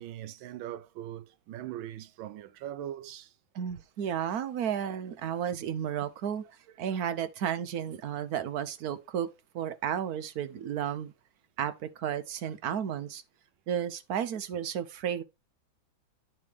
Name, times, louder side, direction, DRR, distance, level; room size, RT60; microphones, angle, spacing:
voice 1, 0.0-3.3 6.8-7.1, right 12 dB, 85° right, 1.4 m, -41 dB
voice 2, 3.5-6.4 6.8-9.3 9.5-11.1 11.6-13.2 13.7-15.2, right 9 dB, 60° right, 1.1 m, -33 dB
9.6 x 3.2 x 5.1 m
omnidirectional pair, 2.1 m